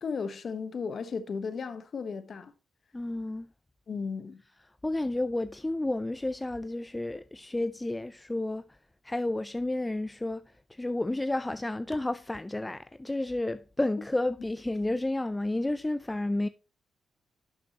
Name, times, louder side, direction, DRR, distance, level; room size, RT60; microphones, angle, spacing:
voice 1, 0.0-2.5 3.9-4.4, left 5 dB, 60° left, 1.1 m, -35 dB
voice 2, 2.9-3.5 4.8-8.8 9.0-16.5, left 2 dB, 15° left, 0.5 m, -31 dB
11.5 x 6.6 x 2.9 m
cardioid pair, 65°, 0 cm